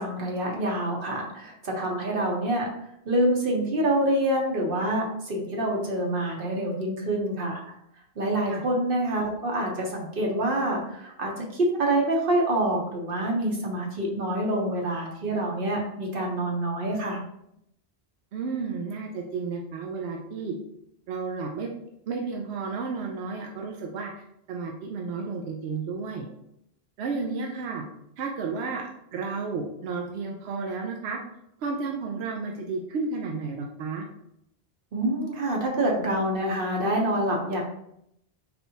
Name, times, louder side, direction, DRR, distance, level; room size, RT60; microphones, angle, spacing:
voice 1, 0.0-2.7 3.1-7.6 8.2-17.2 34.9-37.6, right 1 dB, 60° right, 0 dB, 1.1 m, -26 dB
voice 2, 18.3-20.5 21.1-21.7 22.1-26.3 27.0-27.8 28.2-31.2 31.6-34.1, right 4 dB, 85° right, 2 dB, 0.9 m, -32 dB
4.4 x 3.3 x 2.7 m, 0.77 s
omnidirectional pair, 1.1 m